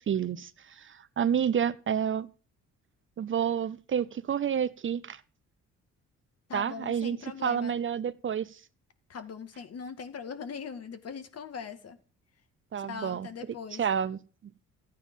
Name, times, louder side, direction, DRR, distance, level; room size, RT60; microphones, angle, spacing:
voice 1, 0.0-2.3 3.2-5.2 6.5-7.2 7.4-8.6 12.7-13.3 13.8-14.2, right 8 dB, 40° right, 0.7 m, -29 dB
voice 2, 6.5-7.7 9.1-12.0 12.8-13.8, left 6 dB, 55° left, 2.0 m, -40 dB
14.0 x 9.1 x 5.5 m
cardioid pair, 90°, 30 cm